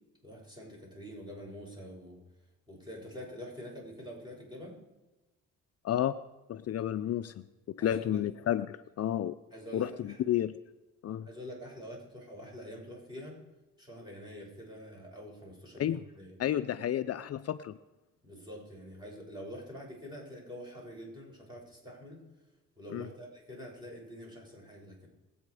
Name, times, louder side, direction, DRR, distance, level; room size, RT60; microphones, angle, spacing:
voice 1, 0.2-2.2 2.7-4.8 7.8-8.2 9.5-10.3 11.3-13.4 13.8-16.4 18.2-22.2 22.8-25.1, equal, 15° right, -2 dB, 6.8 m, -46 dB
voice 2, 6.5-7.3 7.7-9.4 9.7-10.5 11.0-11.3 15.8-16.0 16.4-17.8 22.9-23.1, left 11 dB, 55° left, 11 dB, 0.6 m, -31 dB
23.5 x 8.7 x 4.9 m, 1.1 s
cardioid pair, 90°, 30 cm